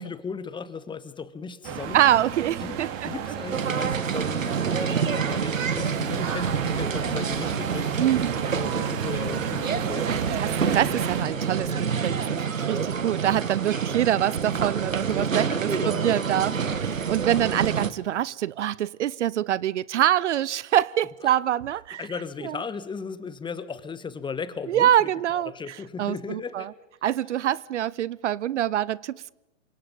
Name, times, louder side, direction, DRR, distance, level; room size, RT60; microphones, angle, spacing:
voice 1, 0.0-2.0 2.6-10.4 11.2-11.8 13.7-13.9 15.1-17.2 17.5-17.6 21.2-21.3 22.0-26.7, left 5 dB, 10° left, 1.5 m, -37 dB
sound 1, 1.6-11.2, right 8 dB, 35° right, 3.7 m, -34 dB
voice 2, 1.9-2.9 8.0-8.3 10.1-16.5 16.8-22.0 22.4-22.6 24.7-25.5 26.0-26.7 27.0-29.3, right 11 dB, 65° right, 0.7 m, -25 dB
sound 2, 3.5-17.9, right 6 dB, 80° right, 1.8 m, -27 dB
28.5 x 25.5 x 5.4 m
figure-of-eight pair, 110°, 39 cm